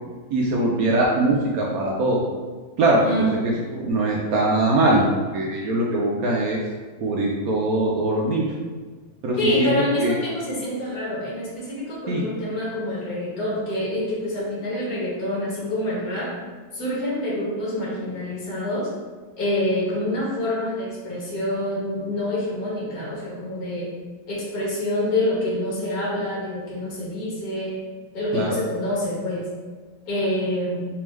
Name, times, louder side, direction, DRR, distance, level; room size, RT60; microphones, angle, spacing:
voice 1, 0.3-2.2 2.8-3.0 3.4-5.0 5.3-6.6 7.0-8.5 9.2-9.7 10.0-10.1 12.1-12.2 28.3-28.5, right 2 dB, 75° right, -3 dB, 0.8 m, -21 dB
voice 2, 9.4-16.3 16.7-18.9 19.4-23.9 24.3-27.8 28.1-29.5 30.1-30.9, left 1 dB, 55° left, -6 dB, 1.6 m, -26 dB
3.4 x 3.4 x 3.1 m, 1.4 s
omnidirectional pair, 2.0 m